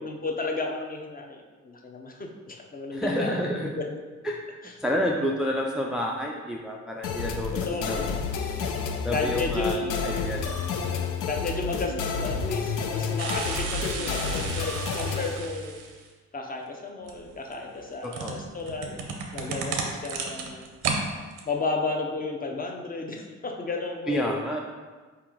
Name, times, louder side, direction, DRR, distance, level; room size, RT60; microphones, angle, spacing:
voice 1, 0.0-3.4 3.7-4.0 4.6-4.7 7.5-8.1 9.1-10.4 11.3-15.8 16.3-19.0 19.3-20.7 21.5-24.4, left 3 dB, 30° left, 2 dB, 0.7 m, -33 dB
voice 2, 2.9-3.7 4.2-4.4 4.8-7.5 7.9-8.0 9.0-10.4 18.0-18.4 24.1-24.6, equal, ahead, -1 dB, 0.3 m, -29 dB
sound 1, 7.0-15.4, left 5 dB, 85° left, 0.5 m, -30 dB
sound 2, 13.2-16.1 17.1-21.0 21.3-21.4, right 5 dB, 90° right, 0.7 m, -33 dB
4.3 x 2.9 x 3.7 m, 1.4 s
cardioid pair, 90°, 30 cm